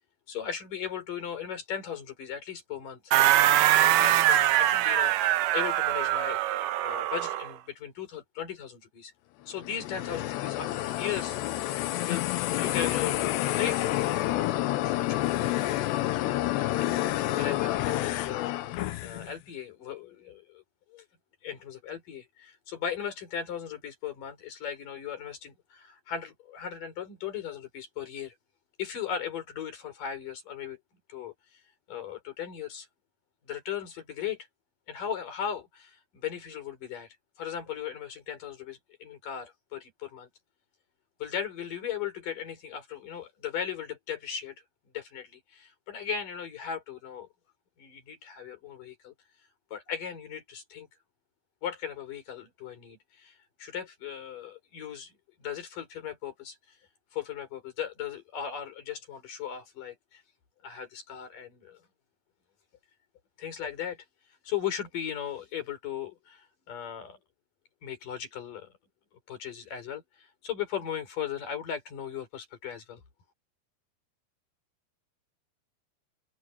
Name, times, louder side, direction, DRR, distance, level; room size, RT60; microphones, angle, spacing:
voice 1, 0.3-3.1 3.8-9.1 9.5-11.4 11.7-14.5 14.8-15.4 15.9-16.3 16.8-17.1 17.4-18.7 19.0-20.6 20.9-21.1 21.4-28.3 28.8-30.8 31.1-31.6 31.9-32.9 33.5-34.4 34.9-37.1 37.4-40.3 41.2-44.6 44.9-47.3 47.8-49.1 49.7-50.9 51.6-55.1 55.4-56.6 57.1-60.2 60.6-61.8 63.4-64.0 64.4-67.2 67.8-68.7 69.3-73.0, left 8 dB, 50° left, 5.9 m, -37 dB
sound 1, 3.1-7.5, right 13 dB, 80° right, 1.9 m, -23 dB
sound 2, 9.6-19.3, left 15 dB, 85° left, 3.2 m, -29 dB
open air
omnidirectional pair, 4.9 m